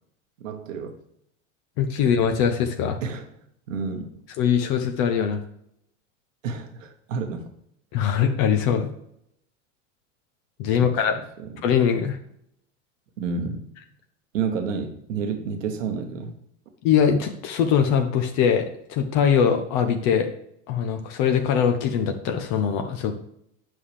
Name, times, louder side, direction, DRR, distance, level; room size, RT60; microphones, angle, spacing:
voice 1, 0.4-1.0 3.0-3.3 3.7-4.1 6.4-7.5 10.6-11.0 11.4-11.6 13.2-13.7 14.3-16.4, right 5 dB, 80° right, 6 dB, 1.2 m, -30 dB
voice 2, 1.8-3.0 4.4-5.4 7.9-8.9 10.6-11.1 11.6-12.2 16.8-20.3 20.7-23.2, left 7 dB, 55° left, 6 dB, 0.9 m, -22 dB
9.3 x 5.7 x 3.3 m, 0.74 s
hypercardioid pair, 100°, 38 cm